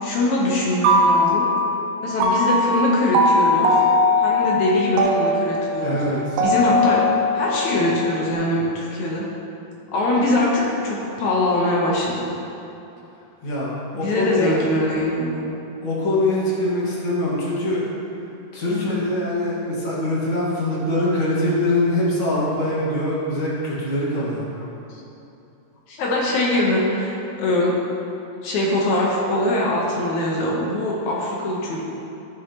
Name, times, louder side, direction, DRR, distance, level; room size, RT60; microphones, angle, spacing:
voice 1, 0.0-1.5 2.0-3.8 4.2-6.0 6.4-7.0 7.3-9.3 9.9-12.3 13.9-15.5 18.7-19.0 24.9-25.0 25.9-27.8 28.4-31.8, left 1 dB, 70° left, -3 dB, 2.1 m, -22 dB
sound 1, 0.6-1.8 2.2-8.3, left 1 dB, 85° right, 2.5 m, -20 dB
voice 2, 5.8-6.4 13.4-14.6 15.8-17.9 18.5-24.4, left 1 dB, 45° left, -6 dB, 2.1 m, -23 dB
13.0 x 6.3 x 2.9 m, 2.8 s
omnidirectional pair, 3.9 m